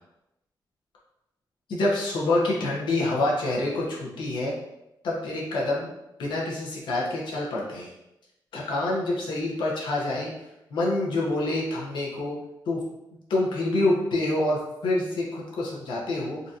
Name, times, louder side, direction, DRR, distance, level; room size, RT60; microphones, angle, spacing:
voice 1, 1.7-4.5 5.0-5.9 6.2-7.9 8.5-10.3 10.7-12.4 12.7-12.8 13.3-16.4, left 2 dB, 85° left, -4 dB, 0.8 m, -26 dB
3.8 x 2.7 x 2.4 m, 0.93 s
wide cardioid pair, 170°, 8 cm